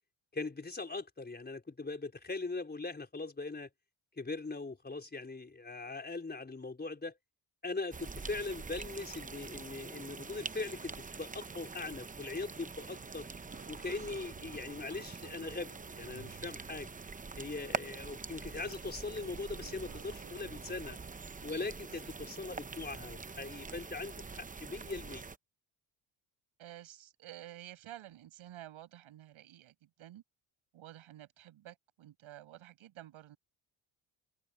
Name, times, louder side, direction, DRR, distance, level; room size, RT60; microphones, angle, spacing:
voice 1, 0.3-3.7 4.2-7.1 7.6-13.3 13.7-16.9 17.4-21.0 21.4-25.3, left 3 dB, 20° left, 4.6 m, -40 dB
sound 1, 7.9-25.4, right 4 dB, 15° right, 0.8 m, -45 dB
Broken Guitar, 12.9-22.4 23.1-23.3 24.0-24.1, right 8 dB, 50° right, 2.9 m, -58 dB
voice 2, 26.6-30.2 30.7-33.4, right 13 dB, 75° right, 7.2 m, -51 dB
cardioid pair, 100°, 48 cm